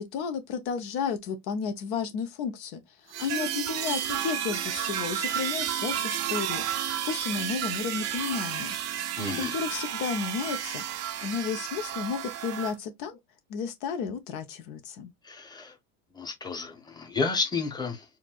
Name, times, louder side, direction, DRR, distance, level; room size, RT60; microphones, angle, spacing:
voice 1, 0.0-8.8 9.4-10.8 11.2-13.2 13.5-15.1, left 6 dB, 55° left, 0.9 m, -33 dB
sound 1, 3.1-12.7, right 10 dB, 35° right, 0.6 m, -32 dB
voice 2, 9.2-9.5 15.2-15.7 16.1-18.0, left 4 dB, 10° left, 1.0 m, -31 dB
4.4 x 2.6 x 2.3 m
hypercardioid pair, 90°, 45 cm